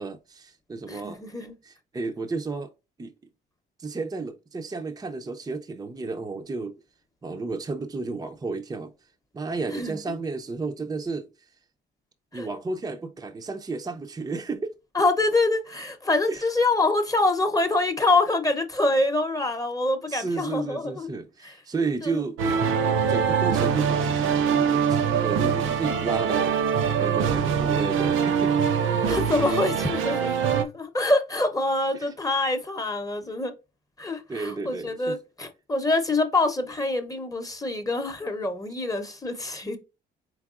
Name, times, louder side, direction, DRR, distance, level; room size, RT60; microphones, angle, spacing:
voice 1, 0.0-1.2 1.6-2.7 3.0-3.1 3.8-6.7 7.2-8.9 9.3-11.3 12.3-14.7 16.3-16.5 20.1-22.4 23.1-26.6 27.0-28.7 31.9-32.1 34.3-35.2, right 4 dB, 20° right, 0.5 m, -32 dB
voice 2, 0.9-1.5 9.7-10.0 12.3-12.5 14.9-21.1 21.4-21.5 22.0-22.2 29.1-33.5 34.0-39.8, left 2 dB, 15° left, 0.8 m, -25 dB
Suspense Orchestral Soundtrack - Hurricane, 22.4-30.6, right 7 dB, 90° right, 0.6 m, -23 dB
4.7 x 3.4 x 2.4 m
cardioid pair, 90°, 20 cm